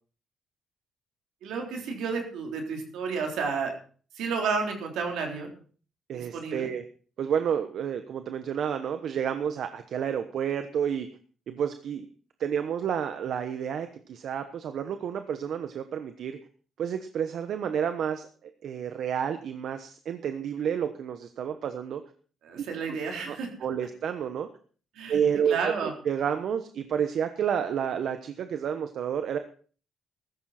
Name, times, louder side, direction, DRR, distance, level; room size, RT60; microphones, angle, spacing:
voice 1, 1.4-3.7 4.1-5.5 6.1-6.7 22.4-23.5 25.0-25.2 25.5-25.9, right 5 dB, 85° right, 2 dB, 3.8 m, -31 dB
voice 2, 6.1-6.8 7.2-11.1 11.5-12.1 12.4-16.4 16.8-22.0 22.6-23.0 23.2-24.5 25.1-29.4, right 8 dB, 65° right, 9 dB, 1.1 m, -30 dB
15.0 x 14.0 x 4.3 m, 0.42 s
cardioid pair, 90°, 0 cm